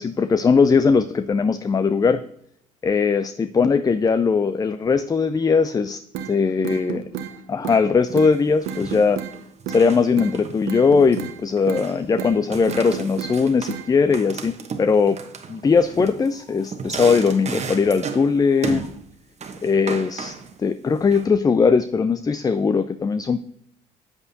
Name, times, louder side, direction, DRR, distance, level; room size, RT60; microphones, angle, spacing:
voice 1, 0.0-2.2 2.8-6.0 6.3-7.1 7.5-9.2 9.7-15.2 15.5-18.9 19.6-20.3 20.6-23.4, left 5 dB, 20° left, 12 dB, 0.4 m, -19 dB
sound 1, 6.1-6.3 6.6-7.3 7.6-7.8 8.2-8.3 8.7-9.3 9.7-9.9 10.2-10.3 10.7-11.4 11.7-11.9 12.2-12.4 12.7-13.4 13.7-13.9, right 9 dB, 75° right, 0.9 m, -30 dB
sound 2, 8.1-8.4 8.6-10.1 10.3-11.3 11.6-12.1 12.5-13.8 14.1-18.4 18.6-19.0 19.4-20.6 21.0-21.3, right 5 dB, 40° right, 1.1 m, -34 dB
8.2 x 7.9 x 2.7 m, 0.73 s
supercardioid pair, 65°, 17 cm